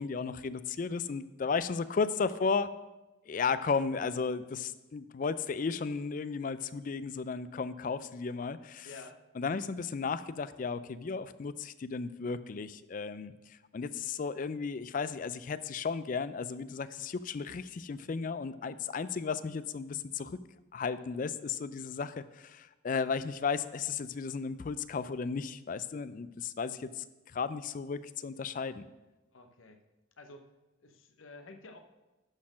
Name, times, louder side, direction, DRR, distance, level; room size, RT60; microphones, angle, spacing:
voice 1, 0.0-2.7 3.3-8.9 9.4-20.4 20.7-27.0 27.3-28.8, left 5 dB, 40° left, 15 dB, 0.3 m, -34 dB
voice 2, 8.8-9.2 29.3-29.8 30.2-30.5 30.8-31.8, left 3 dB, 85° left, 6 dB, 0.9 m, -50 dB
11.5 x 4.4 x 6.1 m, 1.1 s
head